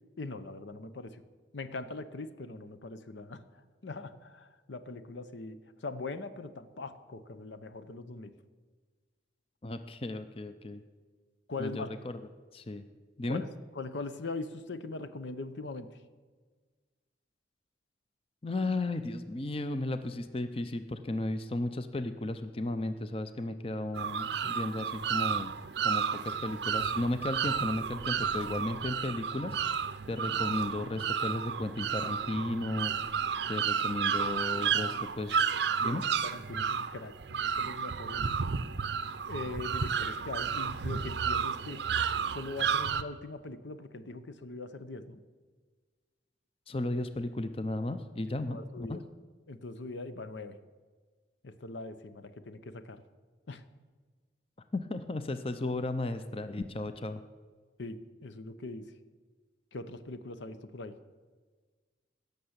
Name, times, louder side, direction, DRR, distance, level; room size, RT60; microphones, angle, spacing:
voice 1, 0.2-1.2 1.5-8.4 11.5-11.9 13.3-13.5 13.8-16.0 34.2-35.0 35.8-38.3 39.3-41.9 42.3-45.2 48.5-49.0 49.5-50.6 51.4-53.0 53.5-53.6 57.8-58.9 59.7-61.0, left 3 dB, 80° left, 11 dB, 0.8 m, -41 dB
voice 2, 9.6-10.8 11.6-12.2 12.5-12.8 13.2-13.4 18.4-25.5 25.8-29.8 30.1-33.2 33.5-35.5 35.8-36.0 46.7-49.0 54.7-57.2, left 2 dB, 30° left, 9 dB, 0.6 m, -34 dB
sound 1, 23.9-43.0, right 6 dB, 70° right, 0.5 m, -32 dB
16.0 x 6.8 x 8.0 m, 1.4 s
head